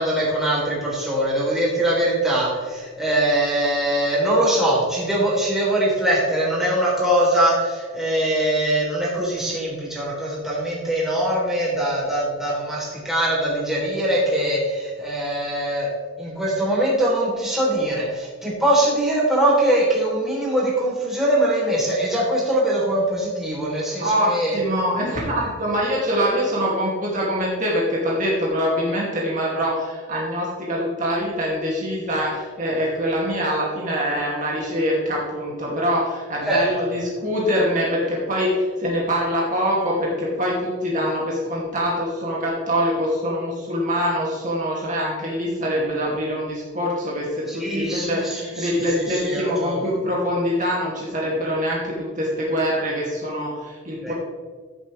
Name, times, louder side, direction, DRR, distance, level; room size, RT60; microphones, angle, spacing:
voice 1, 0.0-15.9 16.2-24.6 36.5-36.6 47.5-49.8 54.0-54.1, right 1 dB, ahead, -6 dB, 3.4 m, -22 dB
voice 2, 24.0-54.1, equal, 40° right, -4 dB, 2.3 m, -24 dB
14.5 x 7.4 x 3.3 m, 1.5 s
head